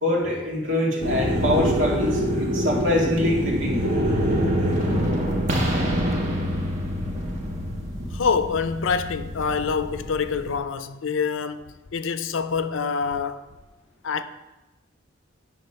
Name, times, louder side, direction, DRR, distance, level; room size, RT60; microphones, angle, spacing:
voice 1, 0.0-3.8, left 1 dB, 80° right, 2.1 m, -24 dB
sound 1, 1.0-10.6, equal, 40° right, 1.2 m, -25 dB
voice 2, 8.1-13.4 14.0-14.2, left 5 dB, 80° left, 0.5 m, -26 dB
9.9 x 3.7 x 5.5 m
head